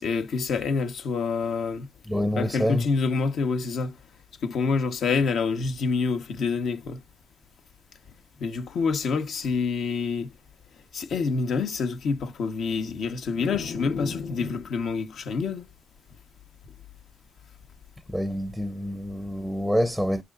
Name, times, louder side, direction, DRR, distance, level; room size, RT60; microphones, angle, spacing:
voice 1, 0.0-1.9 2.3-4.0 4.4-7.0 8.4-10.3 10.9-15.7, left 4 dB, 65° left, 1.4 m, -27 dB
voice 2, 2.1-2.9 18.1-20.2, equal, 5° left, 0.7 m, -26 dB
9.5 x 6.7 x 2.6 m
cardioid pair, 90°, 0 cm